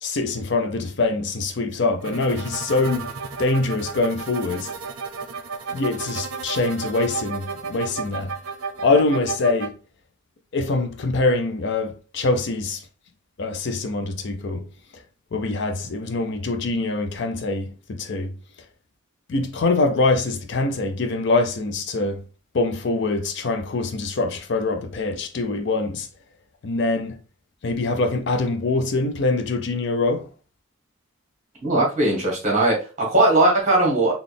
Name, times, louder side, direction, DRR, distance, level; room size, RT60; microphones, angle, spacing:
voice 1, 0.0-4.7 5.7-8.3 8.8-9.7 10.5-12.8 13.4-14.7 14.9-15.0 15.3-18.4 19.3-22.2 22.5-26.1 26.6-27.2 27.6-30.3, left 3 dB, 55° left, 0.4 m, -24 dB
sound 1, 2.0-9.7, right 5 dB, 75° right, 0.6 m, -33 dB
voice 2, 31.6-34.1, right 2 dB, 35° right, 1.6 m, -19 dB
4.0 x 2.3 x 3.3 m
head